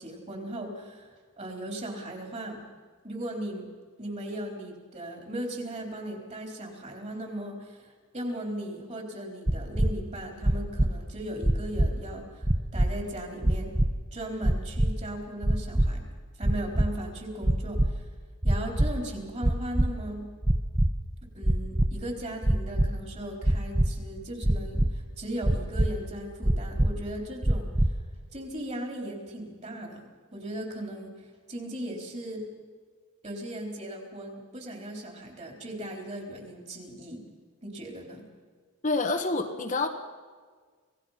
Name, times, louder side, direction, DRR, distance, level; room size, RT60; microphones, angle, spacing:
voice 1, 0.0-2.6 3.0-3.7 4.0-13.7 14.1-16.0 16.4-18.1 18.4-20.3 21.3-27.9 28.3-32.4 33.2-37.2 37.6-38.2, right 1 dB, 30° right, 2 dB, 3.9 m, -37 dB
sound 1, 9.5-9.9 10.4-10.9 11.4-11.9 12.4-12.9 13.4-13.9 14.4-14.9 15.4-15.9 16.4-16.9 17.4-17.9 18.4-18.9 19.4-19.9 20.4-20.9 21.4-21.9 22.4-22.9 23.4-23.9 24.4-24.9 25.4-25.9 26.4-26.9 27.4-27.9, right 1 dB, 15° right, 0.8 m, -22 dB
voice 2, 38.8-39.9, left 3 dB, 35° left, 4 dB, 1.4 m, -27 dB
27.0 x 18.0 x 5.8 m, 1.5 s
head